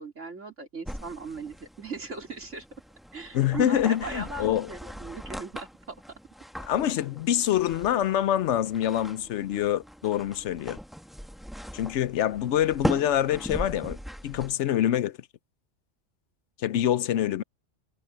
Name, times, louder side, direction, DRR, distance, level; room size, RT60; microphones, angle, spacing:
voice 1, 0.0-2.7 3.1-6.0, right 4 dB, 80° right, 3.9 m, -39 dB
sound 1, 0.8-14.5, equal, ahead, 1.3 m, -39 dB
voice 2, 3.3-4.7 6.6-10.8 11.7-14.0 14.2-15.2 16.6-17.4, left 11 dB, 75° left, 0.9 m, -25 dB
omnidirectional pair, 1.3 m